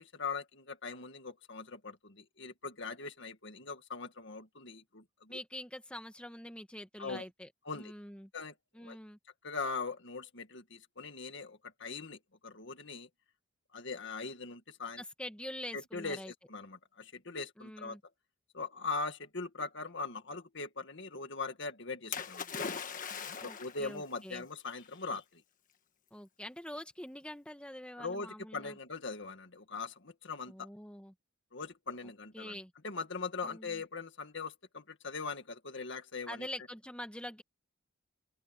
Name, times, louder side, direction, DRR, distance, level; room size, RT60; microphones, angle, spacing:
voice 1, 0.0-5.4 7.0-7.2 7.7-7.9 8.3-9.0 9.4-13.1 13.7-15.0 15.7-18.0 18.5-22.5 23.4-25.4 28.0-30.7 31.5-32.6 32.8-36.5, left 4 dB, 60° left, 2.0 m, -41 dB
voice 2, 5.3-7.5 7.7-8.3 8.7-9.2 15.0-16.3 17.6-18.0 23.4-24.4 26.1-28.8 30.5-31.1 32.3-32.7 33.4-33.8 36.3-37.4, left 1 dB, 5° left, 1.7 m, -45 dB
Splash splatter, 22.1-23.9 24.8-24.9, left 6 dB, 40° left, 1.5 m, -39 dB
open air
head